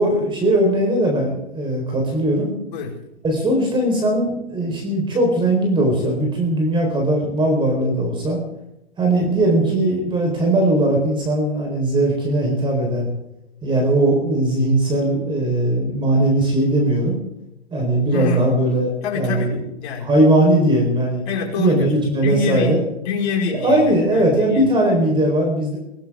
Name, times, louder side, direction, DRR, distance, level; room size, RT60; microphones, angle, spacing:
voice 1, 0.0-2.5 3.2-8.4 9.0-13.1 13.6-17.2 17.7-18.9 19.1-19.6 20.0-21.2 21.6-22.8 23.5-25.8, right 1 dB, 15° right, 0 dB, 4.4 m, -19 dB
voice 2, 18.1-18.4 19.0-20.1 21.3-24.7, left 5 dB, 45° left, -2 dB, 5.3 m, -26 dB
22.5 x 17.0 x 3.7 m, 0.88 s
hypercardioid pair, 125°, 32 cm